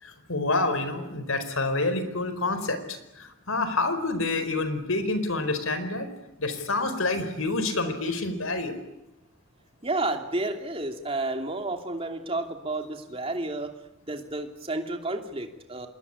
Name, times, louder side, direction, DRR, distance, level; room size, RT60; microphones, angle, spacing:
voice 1, 0.0-6.1 6.4-8.7, left 2 dB, 85° left, 11 dB, 4.6 m, -28 dB
voice 2, 9.8-13.7 14.0-15.9, right 2 dB, 25° right, 5 dB, 2.8 m, -31 dB
27.5 x 21.5 x 9.8 m, 0.95 s
head